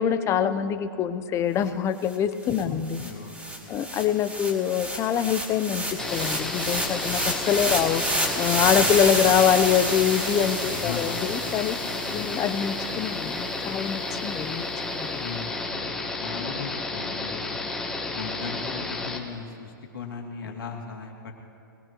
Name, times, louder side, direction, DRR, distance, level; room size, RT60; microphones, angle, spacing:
voice 1, 0.0-3.1 3.7-8.1 8.4-11.8 12.1-14.7 14.9-15.3, left 9 dB, 25° left, 11 dB, 0.6 m, -25 dB
sound 1, 2.1-2.2 2.5-12.8, right 1 dB, 15° right, 2.5 m, -30 dB
voice 2, 2.6-3.8 8.7-9.0 10.8-11.2 12.1-12.3 15.2-17.6 18.1-21.3, left 6 dB, 85° left, 0 dB, 2.5 m, -38 dB
sound 2, 6.0-19.2, left 3 dB, 5° left, 1.5 m, -32 dB
21.5 x 17.5 x 3.0 m, 2.6 s
hypercardioid pair, 125°, 11 cm